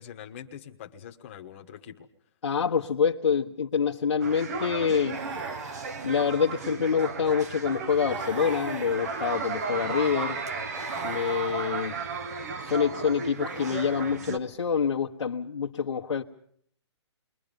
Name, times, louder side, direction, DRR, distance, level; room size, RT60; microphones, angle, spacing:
voice 1, 0.0-2.1 9.8-10.0 10.7-11.4, left 9 dB, 25° left, 4 dB, 1.4 m, -45 dB
voice 2, 2.4-5.2 6.0-10.4 11.0-12.0 12.6-16.2, left 6 dB, 85° left, -2 dB, 1.4 m, -26 dB
sound 1, 4.2-14.4, right 4 dB, 35° right, 1.0 m, -35 dB
sound 2, 5.1-6.9 8.0-9.6 10.7-12.1 13.4-14.5, right 3 dB, 85° right, 2.2 m, -41 dB
29.0 x 22.5 x 5.3 m, 0.62 s
hypercardioid pair, 170°, 15 cm